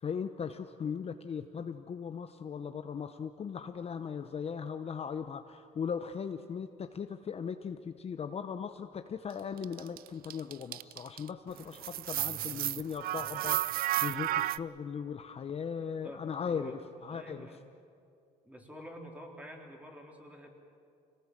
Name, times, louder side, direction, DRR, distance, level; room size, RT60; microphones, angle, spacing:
voice 1, 0.0-17.5, left 6 dB, 35° left, 8 dB, 0.8 m, -38 dB
sound 1, 9.6-11.3 11.6-14.6, right 13 dB, 60° right, 0.5 m, -32 dB
voice 2, 12.1-12.7 13.1-13.3 14.0-14.1 15.8-17.6 18.4-20.5, equal, 10° right, 1 dB, 3.7 m, -49 dB
26.0 x 18.5 x 7.5 m, 2.4 s
cardioid pair, 110°, 17 cm